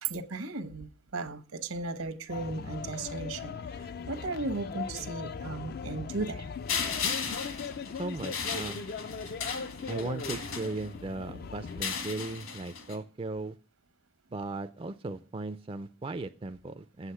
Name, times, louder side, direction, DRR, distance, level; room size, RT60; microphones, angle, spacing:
voice 1, 0.0-6.5, right 3 dB, 80° right, 8 dB, 1.1 m, -36 dB
sound 1, 2.3-11.8, left 5 dB, 45° left, 0.4 m, -39 dB
sound 2, 6.7-11.1 11.7-13.0, left 6 dB, 70° left, 1.7 m, -36 dB
voice 2, 8.0-8.8 9.9-13.6 14.3-17.1, right 3 dB, 25° right, 9 dB, 0.4 m, -37 dB
8.1 x 8.1 x 5.6 m, 0.40 s
head